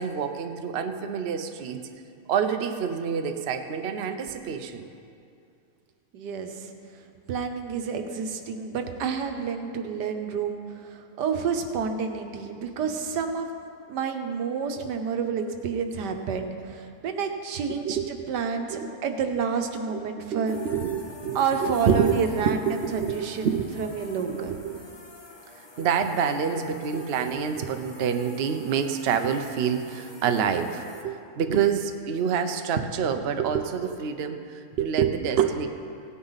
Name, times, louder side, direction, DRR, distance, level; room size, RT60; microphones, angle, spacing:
voice 1, 0.0-1.9 2.3-4.9 17.8-18.1 18.7-18.9 19.9-20.0 20.3-22.2 22.4-23.6 24.3-24.8 25.8-35.7, right 7 dB, 55° right, 7 dB, 0.7 m, -27 dB
voice 2, 6.1-6.7 7.3-13.5 13.9-20.6 21.3-24.6, right 6 dB, 85° right, 5 dB, 1.5 m, -29 dB
sound 1, 20.5-31.0, left 1 dB, 25° left, 0.5 m, -47 dB
17.0 x 9.6 x 4.0 m, 2.4 s
omnidirectional pair, 1.8 m